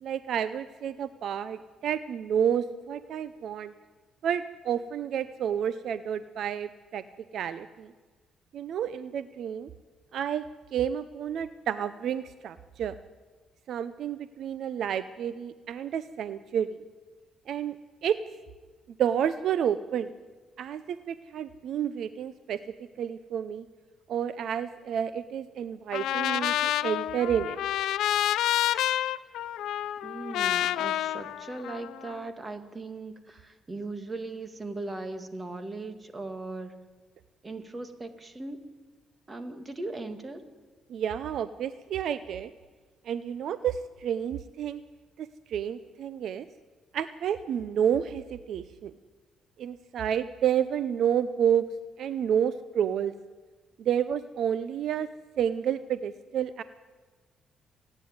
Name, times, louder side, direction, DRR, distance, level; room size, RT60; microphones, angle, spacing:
voice 1, 0.0-3.7 4.2-7.0 7.3-7.9 8.5-9.7 10.1-10.4 10.7-12.9 13.7-16.8 17.5-17.8 18.0-18.2 19.0-20.1 20.6-22.6 23.0-23.7 24.1-27.6 40.9-42.5 43.0-44.8 45.2-46.5 46.9-48.9 49.6-51.6 52.0-53.1 53.8-55.1 55.4-56.6, right 9 dB, 70° right, 14 dB, 0.6 m, -30 dB
Trumpet, 25.9-32.1, left 12 dB, 85° left, 0.5 m, -28 dB
voice 2, 30.0-36.7 37.4-38.7 39.3-40.5, right 2 dB, 25° right, 9 dB, 2.1 m, -38 dB
28.0 x 9.9 x 9.6 m, 1.4 s
cardioid pair, 90°, 0 cm